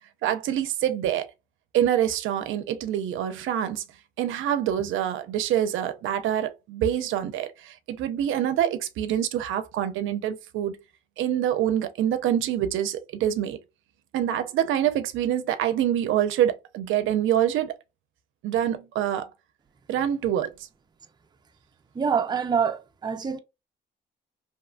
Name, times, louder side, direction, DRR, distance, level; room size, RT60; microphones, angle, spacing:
voice 1, 0.2-1.3 1.7-3.8 4.2-10.8 11.2-13.6 14.1-17.8 18.4-19.3 19.9-20.5, right 10 dB, 80° right, 0.5 m, -26 dB
voice 2, 21.9-23.4, right 6 dB, 20° right, 0.4 m, -25 dB
2.7 x 2.1 x 2.4 m
cardioid pair, 90°, 20 cm